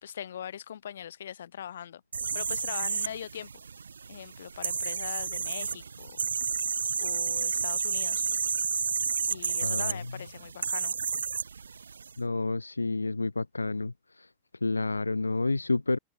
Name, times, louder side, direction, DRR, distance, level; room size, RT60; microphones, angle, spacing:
voice 1, 0.0-2.0 2.3-3.5 4.1-6.2 7.0-8.3 9.3-10.9, left 9 dB, 65° left, 4.6 m, -41 dB
sound 1, 2.1-12.1, right 5 dB, 75° right, 0.3 m, -31 dB
voice 2, 9.6-10.0 12.2-14.3 14.6-16.0, left 3 dB, 80° left, 1.2 m, -29 dB
figure-of-eight pair, 90°, 0 cm